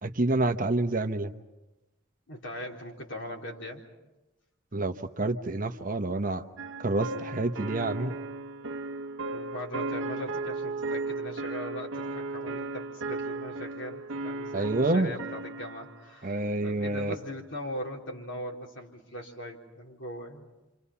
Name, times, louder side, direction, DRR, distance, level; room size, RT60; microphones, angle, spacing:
voice 1, 0.0-1.3 4.7-6.4 6.8-8.1 14.5-15.1 16.2-17.2, right 2 dB, 45° right, 7 dB, 1.0 m, -28 dB
voice 2, 2.3-3.8 9.3-20.5, equal, 70° left, -1 dB, 4.0 m, -40 dB
sound 1, 6.6-16.0, right 3 dB, 80° right, 0.9 m, -35 dB
29.5 x 26.5 x 5.7 m, 1.0 s
head